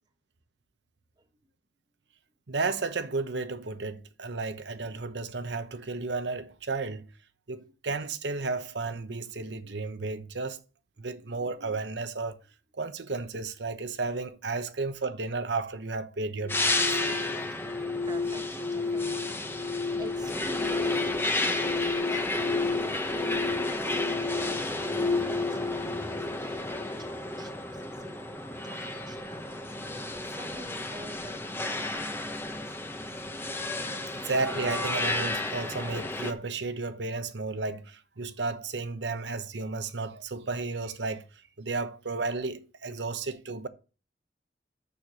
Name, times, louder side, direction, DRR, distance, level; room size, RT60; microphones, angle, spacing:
voice 1, 2.5-7.1 7.5-10.6 11.0-12.4 12.7-17.0 34.2-41.3 41.6-43.7, right 3 dB, 80° right, 1.0 m, -33 dB
voice 2, 11.0-11.4 17.5-33.2, right 2 dB, 25° right, 1.3 m, -49 dB
sound 1, 16.4-27.4, left 4 dB, 55° left, 1.0 m, -32 dB
sound 2, 16.5-36.3, left 2 dB, 15° left, 1.0 m, -32 dB
7.0 x 6.7 x 6.4 m
head